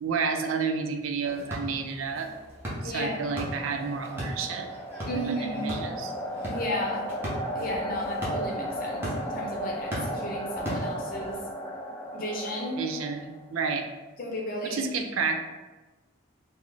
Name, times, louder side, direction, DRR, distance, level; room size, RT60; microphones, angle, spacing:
voice 1, 0.0-2.3 2.8-4.7 5.1-6.1 12.8-13.9 14.6-15.4, right 5 dB, 90° right, 6 dB, 0.4 m, -30 dB
sound 1, 1.2-11.4, equal, 10° right, 0.7 m, -38 dB
sound 2, 2.6-13.5, equal, 10° left, 0.3 m, -36 dB
voice 2, 2.8-3.1 5.0-5.8 6.5-7.1 7.6-11.4 12.1-12.9 14.2-14.8, equal, 45° left, -2 dB, 0.6 m, -33 dB
3.8 x 2.0 x 3.3 m, 1.2 s
head